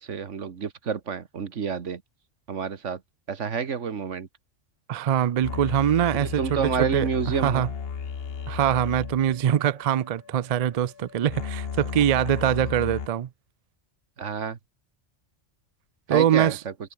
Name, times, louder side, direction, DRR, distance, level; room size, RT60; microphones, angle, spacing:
voice 1, 0.0-2.0 2.5-3.0 3.3-4.3 6.1-7.7 14.2-14.6 16.1-16.7, right 6 dB, 85° right, 1.7 m, -29 dB
voice 2, 4.9-7.1 7.4-7.7 8.5-13.3 16.1-16.6, right 10 dB, 65° right, 0.3 m, -23 dB
sound 1, 5.4-13.1, left 6 dB, 55° left, 1.3 m, -34 dB
omnidirectional pair, 1.2 m